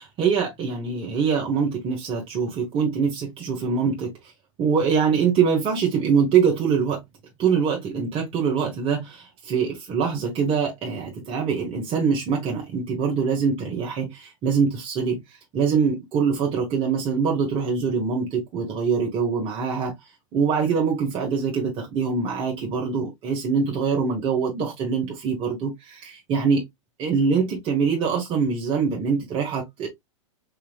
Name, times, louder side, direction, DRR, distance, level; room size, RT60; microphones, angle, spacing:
voice 1, 0.0-4.1 4.6-7.0 7.4-15.2 15.5-19.9 20.3-26.6 27.0-29.9, right 6 dB, 30° right, 1.4 m, -24 dB
4.7 x 3.0 x 2.3 m
hypercardioid pair, 115°, 17 cm